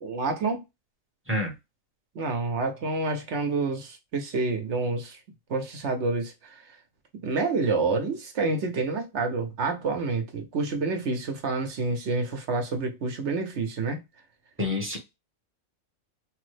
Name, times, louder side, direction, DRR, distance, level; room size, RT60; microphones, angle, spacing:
voice 1, 0.0-0.6 2.1-5.2 5.5-6.3 7.2-14.0, right 3 dB, 60° right, 1.0 m, -28 dB
voice 2, 14.6-15.0, left 2 dB, 10° right, 0.8 m, -27 dB
3.2 x 2.1 x 3.2 m
omnidirectional pair, 1.4 m